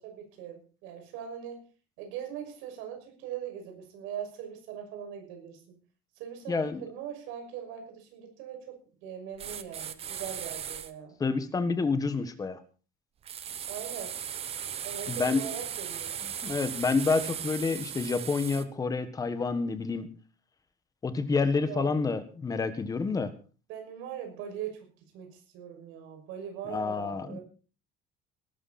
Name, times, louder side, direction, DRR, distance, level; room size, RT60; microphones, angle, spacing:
voice 1, 0.0-1.6 2.0-5.6 6.2-11.1 13.7-14.1 14.8-16.1 21.7-21.9 23.7-24.9 25.1-27.4, right 9 dB, 85° right, 5 dB, 6.3 m, -41 dB
voice 2, 6.5-6.8 11.2-12.6 15.1-15.4 16.2-20.1 21.0-23.3 26.7-27.4, left 4 dB, 20° left, 10 dB, 1.5 m, -28 dB
sound 1, 9.4-10.9 13.3-18.6, right 9 dB, 30° right, 0.9 m, -37 dB
18.5 x 12.5 x 4.3 m, 0.37 s
cardioid pair, 170°, 20 cm